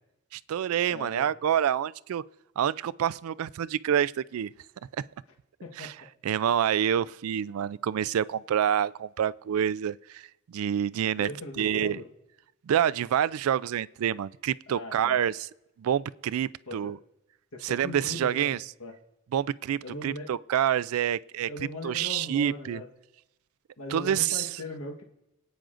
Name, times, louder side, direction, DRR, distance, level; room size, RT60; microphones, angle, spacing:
voice 1, 0.3-2.2 2.6-4.5 5.8-5.9 6.2-11.3 11.6-12.0 12.7-15.5 15.8-17.0 17.6-18.6 19.3-21.5 21.8-22.8 23.9-24.5, right 9 dB, 75° right, 0.3 m, -27 dB
voice 2, 0.9-1.3 5.6-5.9 11.2-12.1 14.7-15.2 16.7-16.9 17.5-19.0 19.8-20.3 21.5-22.9 23.8-25.0, left 2 dB, 70° left, 1.3 m, -39 dB
27.0 x 9.1 x 2.5 m
head